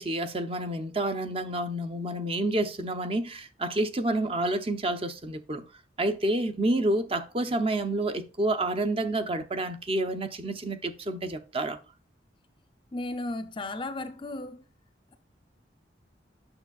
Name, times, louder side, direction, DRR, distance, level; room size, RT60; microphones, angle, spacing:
voice 1, 0.0-5.6 6.0-11.8, right 1 dB, 30° right, 0.6 m, -29 dB
voice 2, 12.9-14.6, left 2 dB, 25° left, 0.6 m, -35 dB
8.8 x 6.1 x 2.4 m
head